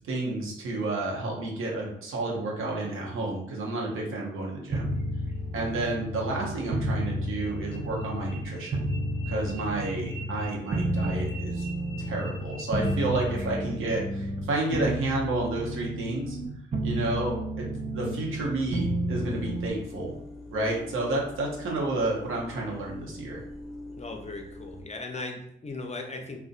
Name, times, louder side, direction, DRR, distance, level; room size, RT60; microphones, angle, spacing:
voice 1, 0.0-4.9 5.5-8.9 9.3-11.7 12.0-16.4 16.8-17.7 17.9-20.1 20.5-23.4, right 2 dB, 85° right, -2 dB, 0.7 m, -30 dB
sound 1, 4.7-8.5 8.7-14.5 14.7-16.5 16.7-19.7, right 1 dB, 35° right, 0.6 m, -31 dB
sound 2, 4.7-5.3 7.1-14.0, right 2 dB, 55° right, 0.9 m, -47 dB
sound 3, 19.1-24.8, left 2 dB, ahead, 1.0 m, -44 dB
voice 2, 24.0-26.5, left 2 dB, 30° left, 3 dB, 0.5 m, -38 dB
2.6 x 2.1 x 2.4 m, 0.75 s
supercardioid pair, 50°, 21 cm